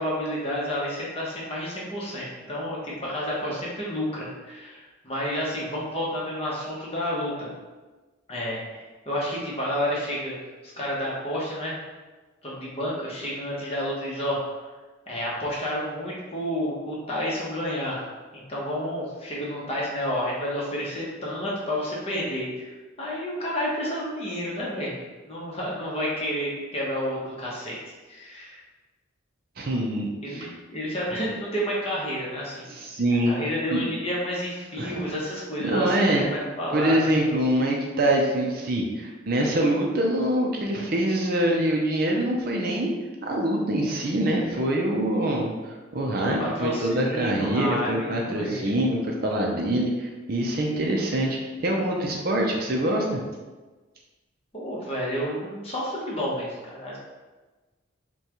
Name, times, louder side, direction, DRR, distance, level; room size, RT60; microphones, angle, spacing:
voice 1, 0.0-7.5 8.3-10.4 10.8-11.8 12.4-14.4 15.1-18.1 18.3-22.7 23.0-25.0 25.2-27.8 28.1-28.6 30.2-32.7 33.3-37.0 46.2-48.8 54.5-57.0, equal, 30° left, -5 dB, 0.9 m, -30 dB
voice 2, 29.6-30.5 32.7-33.3 33.7-33.8 34.8-35.1 35.6-36.2 36.7-42.9 43.2-53.2, right 1 dB, 45° right, 0 dB, 0.5 m, -25 dB
5.5 x 2.3 x 3.0 m, 1.3 s
head